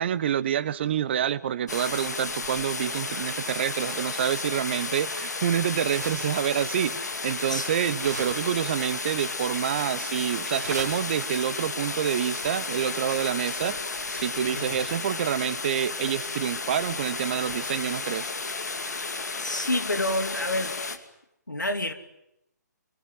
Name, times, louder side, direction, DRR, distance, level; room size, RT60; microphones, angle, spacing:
voice 1, 0.0-13.8 14.1-18.3, right 9 dB, 35° right, 17 dB, 1.0 m, -27 dB
sound 1, 1.7-21.0, left 4 dB, 65° left, 2.6 m, -33 dB
sound 2, 5.7-6.6 6.8-7.0 7.6-8.9 9.1-9.4 9.7-9.8 10.2-11.9, right 2 dB, 70° right, 3.5 m, -41 dB
voice 2, 19.4-21.0 21.5-21.9, left 1 dB, 85° left, 8 dB, 2.9 m, -29 dB
25.0 x 23.0 x 9.7 m, 0.82 s
figure-of-eight pair, 140°, 10 cm